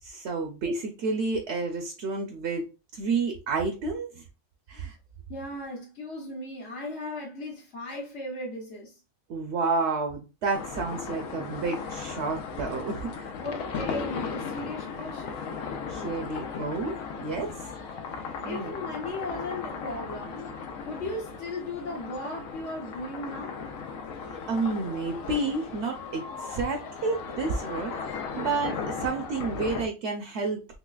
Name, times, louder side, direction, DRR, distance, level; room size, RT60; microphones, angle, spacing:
voice 1, 0.0-2.6 2.9-4.2 4.7-4.9 9.3-13.3 15.9-17.5 18.4-18.7 24.3-30.6, right 3 dB, 65° right, 0.9 m, -30 dB
voice 2, 5.3-9.0 13.4-15.4 17.7-17.8 18.4-20.5 20.9-23.6, left 2 dB, 60° left, 1.1 m, -37 dB
sound 1, 10.5-29.9, left 5 dB, 90° left, 1.0 m, -36 dB
3.9 x 3.2 x 2.3 m
omnidirectional pair, 1.4 m